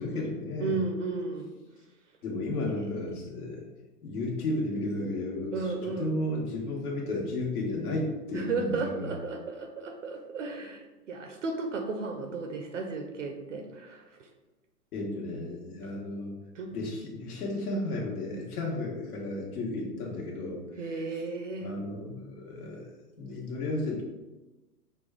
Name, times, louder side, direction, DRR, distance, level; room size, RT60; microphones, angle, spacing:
voice 1, 0.0-0.8 2.2-3.6 4.0-9.1 14.9-16.3 16.7-20.6 21.6-22.9 23.2-24.0, left 2 dB, 65° left, -2 dB, 1.3 m, -33 dB
voice 2, 0.6-1.5 5.5-6.2 8.3-14.3 16.5-16.7 20.7-21.7, right 3 dB, 50° right, 4 dB, 0.6 m, -34 dB
6.0 x 2.3 x 3.5 m, 1.1 s
hypercardioid pair, 160°, 48 cm